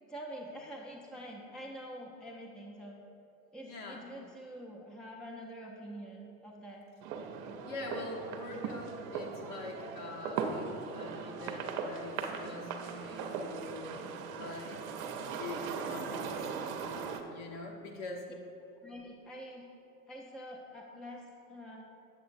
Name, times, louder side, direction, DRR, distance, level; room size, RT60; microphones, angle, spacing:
voice 1, 0.1-3.0 3.5-6.8 18.8-19.7 20.1-21.8, equal, ahead, -1 dB, 0.5 m, -46 dB
voice 2, 3.6-4.0 7.6-13.9 14.4-14.8 15.3-16.4 16.7-16.8 17.3-18.3, left 2 dB, 55° left, -1 dB, 1.2 m, -44 dB
sound 1, 7.0-17.2, right 5 dB, 65° right, 0.7 m, -39 dB
7.8 x 7.0 x 2.5 m, 2.8 s
hypercardioid pair, 80°, 45 cm